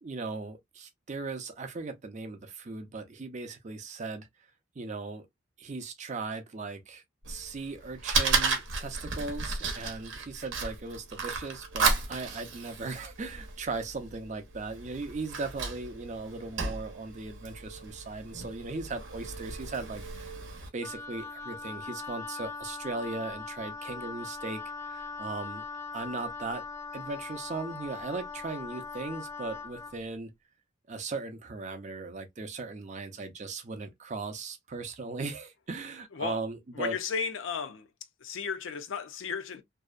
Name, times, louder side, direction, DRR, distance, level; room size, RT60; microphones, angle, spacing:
voice 1, 0.0-4.3 4.8-5.3 5.6-20.3 20.7-25.6 25.9-26.6 26.9-30.3 30.9-37.0, right 3 dB, 35° right, 0.5 m, -38 dB
Fire, 7.2-20.7, right 4 dB, 70° right, 0.7 m, -34 dB
Wind instrument woodwind instrument, 20.8-30.0, left 4 dB, 15° left, 0.5 m, -40 dB
voice 2, 36.8-37.9 38.2-39.6, left 6 dB, 75° left, 0.5 m, -34 dB
2.7 x 2.0 x 2.4 m
head